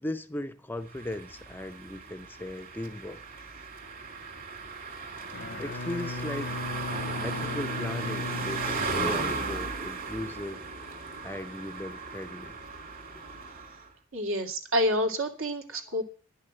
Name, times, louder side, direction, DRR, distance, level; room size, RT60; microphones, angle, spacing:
voice 1, 0.0-3.2 5.6-6.5 7.2-10.6 11.2-12.6 15.9-16.0, left 1 dB, 10° left, 0.5 m, -37 dB
sound 1, 0.9-13.9, right 4 dB, 45° right, 2.7 m, -36 dB
Bowed string instrument, 5.2-9.6, left 3 dB, 55° left, 0.6 m, -37 dB
voice 2, 14.1-16.0, equal, 75° right, 2.5 m, -28 dB
11.0 x 6.5 x 8.9 m
head